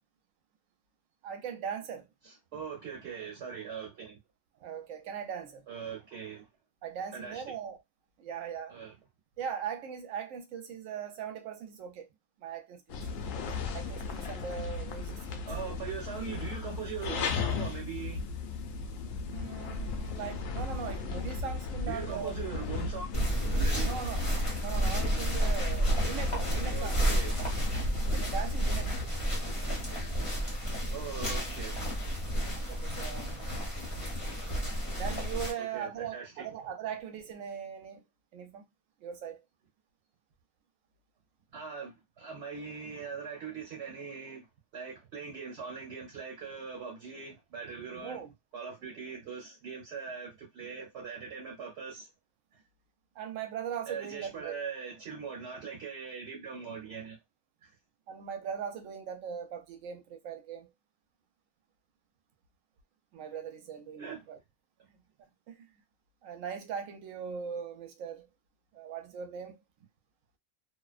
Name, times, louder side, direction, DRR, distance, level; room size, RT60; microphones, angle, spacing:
voice 1, 1.2-2.0 4.6-5.7 6.8-7.8 8.2-8.7 9.4-12.1 12.4-13.0 13.7-15.5 19.3-22.5 23.8-24.2 24.6-27.1 28.1-29.3 32.6-33.4 34.9-38.0 38.3-38.6 39.0-39.4 47.9-48.3 53.2-54.6 58.1-60.7 63.1-64.4 64.9-65.0 65.5-65.7 66.2-68.3 68.7-69.6, right 7 dB, 85° right, 1.0 m, -40 dB
voice 2, 2.2-4.2 5.7-6.5 7.1-7.6 8.7-8.9 15.4-18.3 21.9-23.1 23.6-23.9 26.7-27.3 30.9-31.8 35.6-36.5 41.5-44.5 44.7-48.2 48.5-52.1 52.5-52.6 53.9-57.2 57.6-57.7 64.0-64.2 64.8-64.9, right 6 dB, 60° right, 1.1 m, -41 dB
sound 1, 12.9-29.1, left 4 dB, 90° left, 1.0 m, -36 dB
sound 2, 23.1-35.5, equal, 25° left, 1.2 m, -31 dB
2.5 x 2.1 x 2.3 m
omnidirectional pair, 1.3 m